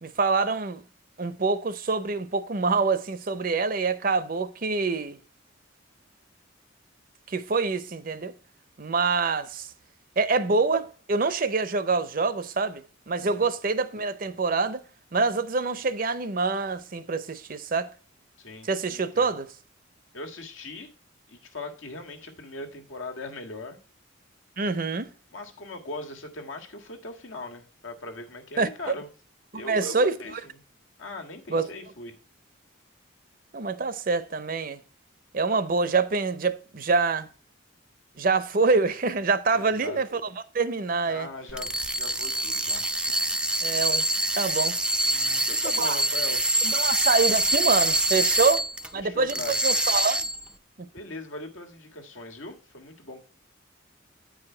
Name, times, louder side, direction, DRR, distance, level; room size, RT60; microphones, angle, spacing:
voice 1, 0.0-0.8 1.2-5.2 7.3-8.3 8.8-9.7 10.2-14.8 15.1-17.9 18.7-19.5 24.6-25.1 28.6-28.9 29.7-30.1 31.5-31.7 33.5-34.8 35.3-37.3 38.2-40.2 40.5-41.3 43.6-44.1 44.4-44.8 45.8-46.0 46.6-48.6 48.9-50.2 50.8-50.9, right 4 dB, 45° right, 0.6 m, -26 dB
voice 2, 13.2-13.5 18.4-19.3 20.1-20.9 21.3-23.8 25.3-29.1 29.5-30.6 31.0-32.1 39.5-40.0 41.0-42.8 45.1-46.4 48.9-49.6 50.9-53.2, left 2 dB, 80° left, 1.6 m, -40 dB
sound 1, 41.5-48.9 49.3-50.5, right 1 dB, 5° right, 0.4 m, -25 dB
9.3 x 4.9 x 4.4 m
head